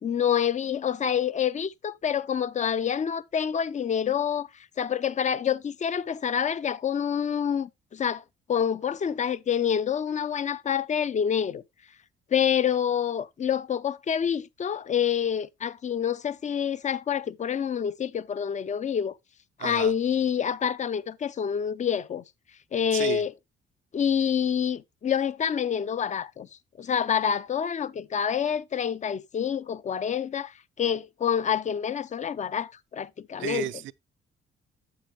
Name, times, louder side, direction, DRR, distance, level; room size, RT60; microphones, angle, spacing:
voice 1, 0.0-4.5 4.8-8.2 8.5-11.6 12.3-19.2 19.6-22.2 22.7-23.3 23.9-26.5 26.8-33.7, left 8 dB, 35° left, 0.5 m, -27 dB
voice 2, 19.6-19.9 22.9-23.2 33.4-33.9, right 14 dB, 75° right, 0.4 m, -32 dB
7.9 x 7.9 x 3.0 m
cardioid pair, 90°, 20 cm